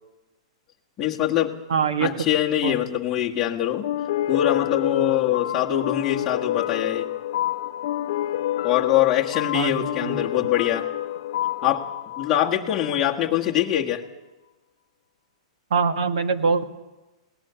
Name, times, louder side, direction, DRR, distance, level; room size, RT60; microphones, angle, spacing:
voice 1, 1.0-1.6 2.0-3.9 4.3-7.1 8.6-10.9 11.6-11.9 12.2-14.0, left 11 dB, 15° left, -2 dB, 1.6 m, -23 dB
voice 2, 1.7-2.1 2.6-2.8 9.5-10.2 15.7-16.7, right 5 dB, 70° right, 9 dB, 1.6 m, -23 dB
sound 1, 3.8-13.1, left 12 dB, 45° left, 0.7 m, -28 dB
21.0 x 18.5 x 7.0 m, 1.1 s
supercardioid pair, 175°, 3 cm